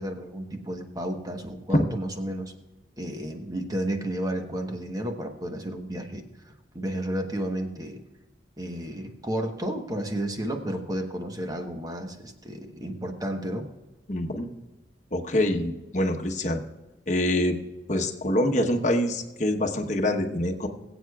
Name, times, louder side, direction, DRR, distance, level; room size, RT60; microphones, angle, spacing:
voice 1, 0.0-2.5 3.0-6.3 6.7-8.0 8.6-13.7, right 1 dB, 20° right, 4 dB, 1.0 m, -32 dB
voice 2, 14.1-14.5 15.1-16.6 17.1-17.6 17.9-20.7, left 1 dB, 45° left, 3 dB, 1.0 m, -25 dB
21.5 x 8.1 x 2.3 m, 1.1 s
head